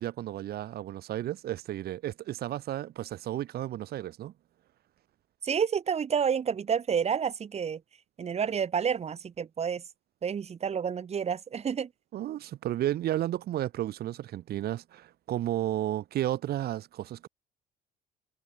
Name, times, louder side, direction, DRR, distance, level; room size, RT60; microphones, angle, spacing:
voice 1, 0.0-4.3 12.1-17.3, right 13 dB, 65° right, 5.5 m, -33 dB
voice 2, 5.4-7.8 8.2-9.8 10.2-11.9, right 7 dB, 40° right, 3.3 m, -29 dB
cardioid pair, 110°, 17 cm